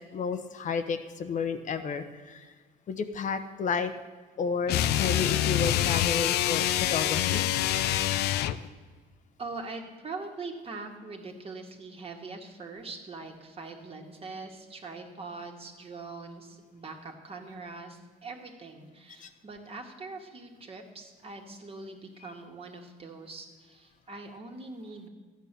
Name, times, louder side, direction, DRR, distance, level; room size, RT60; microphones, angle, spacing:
voice 1, 0.1-2.4 2.9-3.9 4.4-7.4 19.2-19.3, left 5 dB, 50° left, 8 dB, 1.0 m, -31 dB
sound 1, 4.7-8.7, left 12 dB, 75° left, 0.6 m, -26 dB
voice 2, 9.4-25.1, right 3 dB, 35° right, 2 dB, 2.0 m, -42 dB
13.5 x 9.2 x 6.8 m, 1.4 s
cardioid pair, 110°, 17 cm